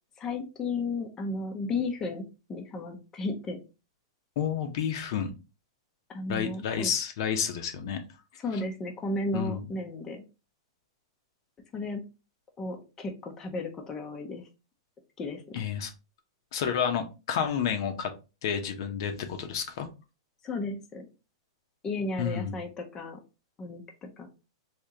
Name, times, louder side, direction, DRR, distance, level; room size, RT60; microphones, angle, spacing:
voice 1, 0.2-3.6 6.1-6.9 8.4-10.2 11.7-12.0 12.6-14.4 15.2-15.6 20.4-21.1 21.8-23.2 23.6-24.3, left 2 dB, 20° left, 3 dB, 0.6 m, -34 dB
voice 2, 4.4-5.3 6.3-8.0 9.3-9.6 15.5-15.9 16.5-18.1 18.4-19.9 22.2-22.6, left 8 dB, 60° left, 6 dB, 0.7 m, -30 dB
3.5 x 2.8 x 2.8 m, 0.30 s
hypercardioid pair, 145°, 3 cm